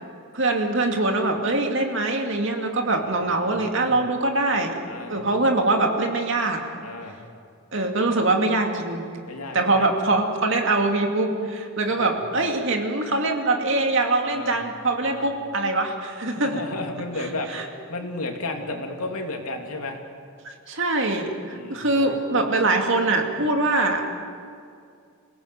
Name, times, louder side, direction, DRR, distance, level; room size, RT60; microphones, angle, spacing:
voice 1, 0.3-4.8 5.1-6.6 7.7-9.0 9.5-16.6 17.5-17.6 20.4-24.2, right 2 dB, 60° right, 3 dB, 2.5 m, -23 dB
voice 2, 2.9-4.0 4.8-5.2 6.8-7.2 9.3-9.9 11.9-12.2 14.3-14.6 15.0-15.3 16.3-20.0 21.5-22.2, left 2 dB, 85° left, 3 dB, 2.8 m, -34 dB
27.0 x 17.5 x 7.8 m, 2.3 s
head